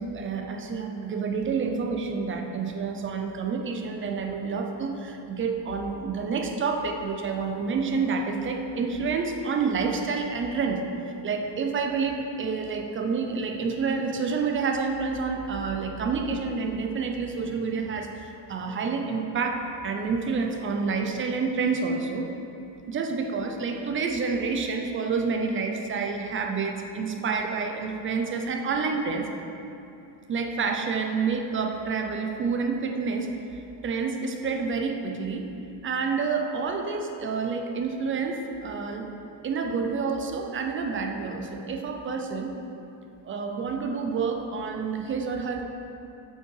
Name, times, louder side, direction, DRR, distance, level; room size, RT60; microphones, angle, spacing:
voice 1, 0.0-10.8 11.2-22.3 22.9-29.3 30.3-33.3 33.5-35.4 35.8-39.1 39.4-42.5 43.2-45.6, right 5 dB, 25° right, 3 dB, 0.4 m, -28 dB
8.3 x 5.6 x 4.6 m, 2.8 s
cardioid pair, 160°, 48 cm